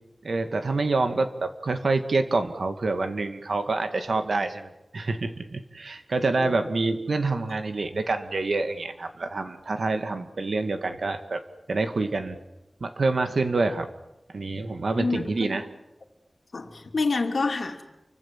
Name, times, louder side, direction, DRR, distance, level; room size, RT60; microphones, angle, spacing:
voice 1, 0.2-11.4 11.7-12.4 12.8-13.9 14.3-15.6, right 3 dB, 80° right, 2.3 m, -27 dB
voice 2, 15.0-15.6 16.5-17.8, left 3 dB, 80° left, 2.6 m, -28 dB
29.5 x 25.0 x 7.6 m
wide cardioid pair, 85°, 0 cm